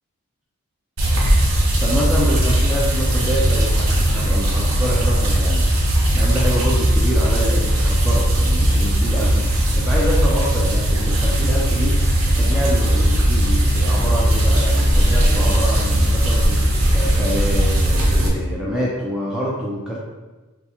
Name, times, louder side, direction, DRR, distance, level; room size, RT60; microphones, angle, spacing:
sound 1, 1.0-18.3, right 1 dB, 75° right, 0.8 m, -18 dB
voice 1, 1.8-5.7 6.1-20.0, equal, 5° right, -6 dB, 0.4 m, -26 dB
5.5 x 2.1 x 2.9 m, 1.2 s
head